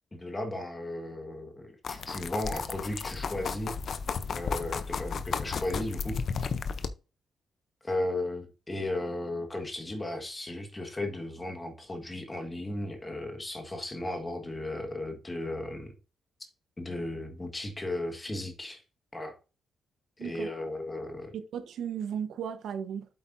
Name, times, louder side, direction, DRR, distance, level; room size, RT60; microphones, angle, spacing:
voice 1, 0.1-3.8 4.3-6.2 6.4-6.5 7.8-15.9 16.8-18.8 19.1-19.3 20.2-21.3, left 1 dB, 15° left, 1.6 m, -35 dB
sound 1, 1.8-6.9, left 5 dB, 50° left, 0.6 m, -33 dB
voice 2, 20.2-20.5 21.3-23.1, right 8 dB, 80° right, 1.1 m, -35 dB
8.4 x 7.9 x 2.7 m
wide cardioid pair, 160°, 0 cm